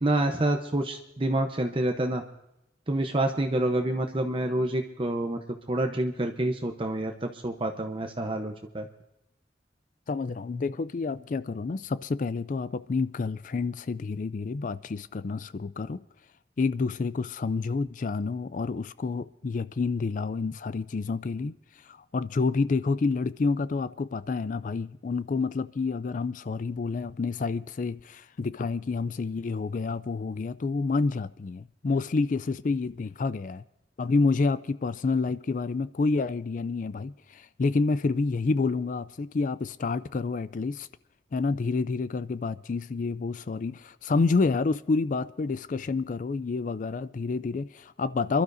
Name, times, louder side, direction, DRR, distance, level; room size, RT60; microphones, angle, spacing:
voice 1, 0.0-2.2 2.9-5.4 5.7-8.9, right 1 dB, 30° right, 0.8 m, -27 dB
voice 2, 10.1-16.0 16.6-33.6 34.0-40.9 41.3-48.4, left 4 dB, 45° left, 0.4 m, -29 dB
28.0 x 12.5 x 2.6 m
head